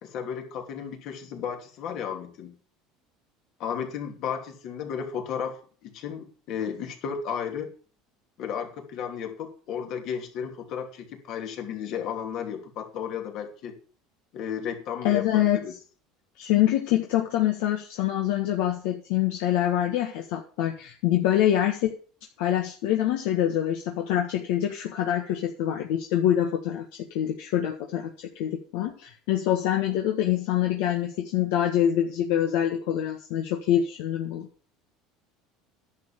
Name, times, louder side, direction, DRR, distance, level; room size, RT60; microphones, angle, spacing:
voice 1, 0.0-2.5 3.6-7.7 8.4-13.8 14.3-15.7, left 7 dB, 60° left, 4 dB, 2.8 m, -34 dB
voice 2, 15.0-15.6 16.4-21.9 22.4-26.8 27.1-34.5, left 11 dB, 75° left, 2 dB, 1.5 m, -25 dB
10.5 x 7.1 x 7.5 m, 0.42 s
supercardioid pair, 120°, 0 cm